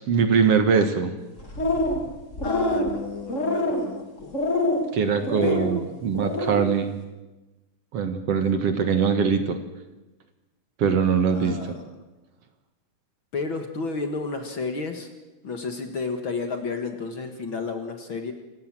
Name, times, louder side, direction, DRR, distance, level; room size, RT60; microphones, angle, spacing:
voice 1, 0.1-1.1 4.9-6.9 7.9-9.6 10.8-11.6, right 6 dB, 55° right, 8 dB, 2.3 m, -22 dB
sound 1, 1.4-2.1 2.3-2.9 3.3-3.9 4.3-4.8 5.2-5.7 6.1-6.6, left 2 dB, 25° left, 3.6 m, -25 dB
voice 2, 2.4-4.4 5.4-5.8 11.3-11.9 13.3-15.1 15.4-18.3, left 4 dB, 45° left, 6 dB, 2.1 m, -31 dB
28.0 x 16.5 x 7.6 m, 1.1 s
omnidirectional pair, 3.5 m